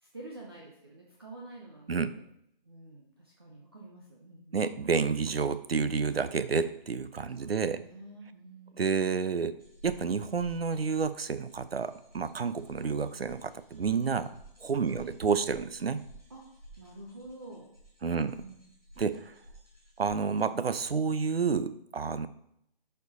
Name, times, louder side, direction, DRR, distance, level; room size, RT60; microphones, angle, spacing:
voice 1, 0.0-2.2 2.6-4.7 7.3-8.9 14.9-15.1 16.3-16.4 16.8-17.7 18.1-18.6, right 2 dB, 25° right, -3 dB, 0.8 m, -48 dB
voice 2, 4.5-7.8 8.8-9.6 9.8-14.3 14.6-16.0 18.0-18.4 19.0-19.3 20.0-22.3, right 5 dB, 85° right, 13 dB, 0.8 m, -30 dB
sound 1, 9.6-20.4, right 1 dB, 10° right, 1.8 m, -54 dB
12.0 x 4.6 x 4.1 m, 0.74 s
hypercardioid pair, 175°, 29 cm